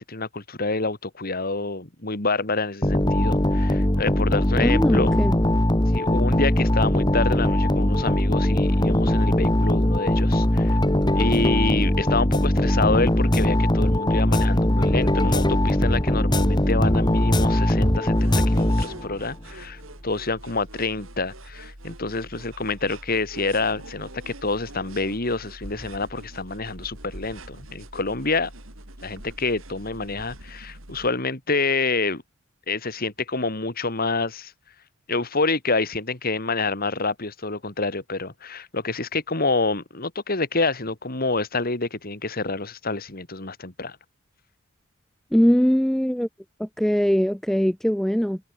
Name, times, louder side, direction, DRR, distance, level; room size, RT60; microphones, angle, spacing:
voice 1, 0.0-5.1 5.9-10.8 11.1-28.5 29.0-32.2 32.7-34.5 35.1-44.0, left 3 dB, 45° left, 2.9 m, -27 dB
sound 1, 2.8-19.3, left 1 dB, 20° left, 2.1 m, -20 dB
voice 2, 4.6-5.3 45.3-46.3 46.6-48.4, equal, ahead, 0.4 m, -21 dB
sound 2, 18.1-31.1, right 1 dB, 75° right, 6.8 m, -43 dB
head